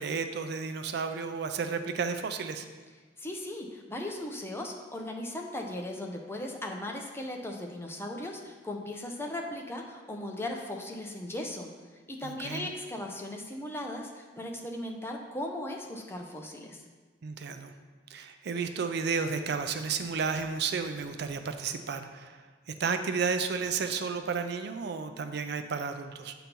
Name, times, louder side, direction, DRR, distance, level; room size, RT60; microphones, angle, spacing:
voice 1, 0.0-2.6 12.2-12.7 17.2-17.7 18.1-22.4 22.8-26.3, right 5 dB, 65° right, 8 dB, 0.4 m, -32 dB
voice 2, 3.2-11.7 12.1-16.8, left 1 dB, 15° left, 1 dB, 0.6 m, -37 dB
8.3 x 3.0 x 5.2 m, 1.4 s
head